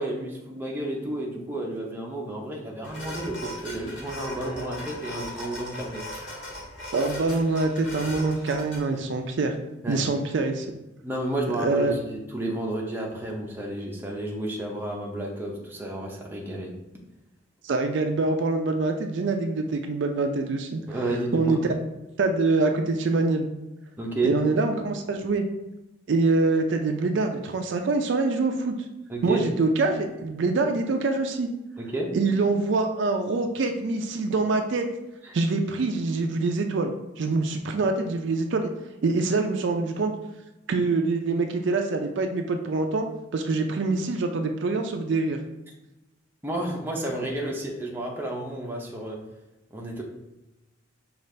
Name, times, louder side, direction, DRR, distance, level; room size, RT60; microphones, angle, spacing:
voice 1, 0.0-6.0 8.9-9.0 9.8-10.0 11.0-16.7 20.9-21.6 24.0-24.3 29.1-29.4 31.8-32.1 46.4-49.2 49.7-50.0, right 1 dB, 10° right, -2 dB, 0.6 m, -31 dB
sound 1, 2.8-8.8, left 1 dB, 60° left, 1.3 m, -38 dB
voice 2, 6.9-9.6 9.9-10.7 11.6-11.9 17.6-20.8 21.3-21.6 22.2-23.5 24.2-25.4 26.1-28.7 29.2-31.5 32.1-34.9 35.3-38.7 39.0-40.1 40.7-43.1 43.3-45.4, right 3 dB, 60° right, 5 dB, 0.4 m, -25 dB
5.2 x 2.4 x 3.2 m, 0.99 s
head